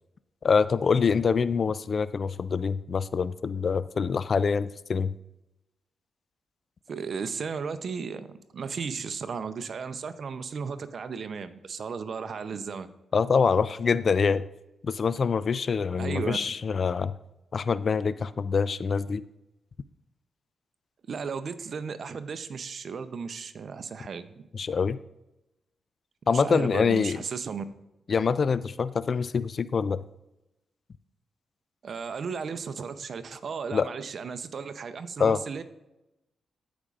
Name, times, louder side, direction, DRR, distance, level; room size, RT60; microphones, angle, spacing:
voice 1, 0.4-5.1 13.1-14.4 14.8-17.1 17.5-19.2 24.5-25.0 26.3-27.2 28.1-30.0 33.7-33.9 35.2-35.4, left 5 dB, 55° left, 16 dB, 0.3 m, -25 dB
voice 2, 6.9-12.9 16.0-16.4 21.1-24.3 26.3-27.6 31.8-35.6, right 5 dB, 65° right, 11 dB, 0.6 m, -35 dB
14.0 x 5.1 x 2.5 m, 0.92 s
supercardioid pair, 50°, 0 cm